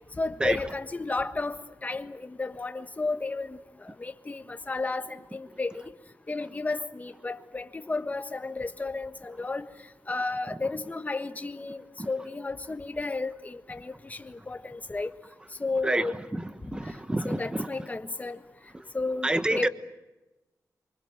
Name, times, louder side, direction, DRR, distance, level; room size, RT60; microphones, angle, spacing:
voice 1, 0.2-5.8 6.3-9.6 10.1-15.1 15.6-16.1 17.2-18.4 18.9-19.7, left 3 dB, 25° left, 1.4 m, -33 dB
voice 2, 16.3-17.7 19.2-19.7, right 1 dB, 15° right, 1.2 m, -28 dB
28.0 x 25.0 x 7.7 m
wide cardioid pair, 125°, 7 cm